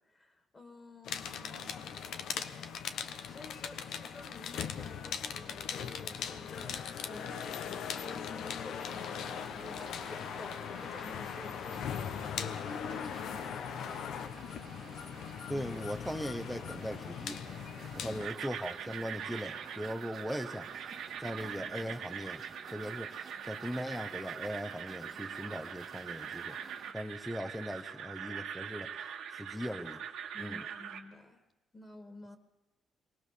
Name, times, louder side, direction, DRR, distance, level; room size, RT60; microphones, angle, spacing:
voice 1, 0.0-1.8 3.1-14.4 17.8-18.3 30.3-31.4 31.7-32.4, left 2 dB, 25° left, 8 dB, 2.1 m, -52 dB
sound 1, 1.0-18.3, left 7 dB, 75° left, 1.1 m, -39 dB
sound 2, 8.8-26.9, right 6 dB, 50° right, 2.0 m, -53 dB
voice 2, 15.5-17.4 18.0-20.9 21.2-22.4 22.7-26.6 26.9-28.9 29.3-30.0 30.4-30.6, equal, ahead, 6 dB, 0.9 m, -39 dB
sound 3, 18.2-31.0, right 8 dB, 80° right, 1.8 m, -42 dB
23.5 x 17.5 x 6.9 m, 1.0 s
cardioid pair, 90°, 0 cm